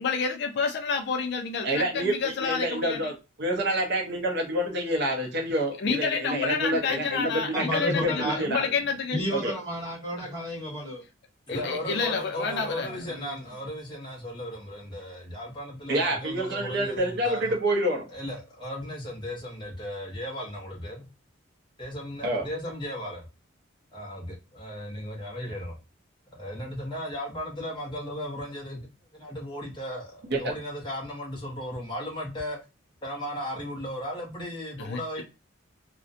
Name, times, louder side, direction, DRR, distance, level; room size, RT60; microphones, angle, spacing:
voice 1, 0.0-3.1 5.8-9.2 10.2-10.3 11.5-12.9 34.8-35.2, left 5 dB, 55° left, 0.4 m, -29 dB
voice 2, 1.6-3.1 3.4-8.7 9.3-9.5 15.9-18.1 22.2-22.4 30.3-30.4, right 1 dB, 55° right, 0.6 m, -27 dB
voice 3, 7.5-8.4 9.1-11.0 11.5-13.5, left 1 dB, 20° right, 1.0 m, -33 dB
voice 4, 11.5-17.5 18.1-21.1 21.8-23.3 23.9-25.8 26.3-28.9 29.1-32.6 33.0-35.2, equal, 25° left, 0.7 m, -36 dB
2.4 x 2.1 x 2.5 m
head